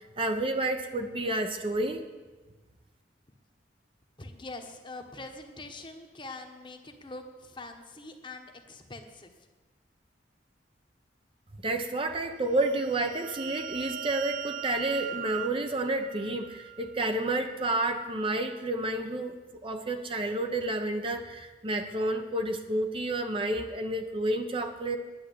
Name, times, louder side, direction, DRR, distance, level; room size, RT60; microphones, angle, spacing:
voice 1, 0.0-2.0 11.6-19.4 19.6-25.0, right 2 dB, 30° right, 6 dB, 0.8 m, -30 dB
voice 2, 4.2-9.3, left 2 dB, 30° left, 5 dB, 1.2 m, -44 dB
sound 1, 12.5-17.0, right 11 dB, 50° right, 0.4 m, -40 dB
10.5 x 9.6 x 8.3 m, 1.2 s
head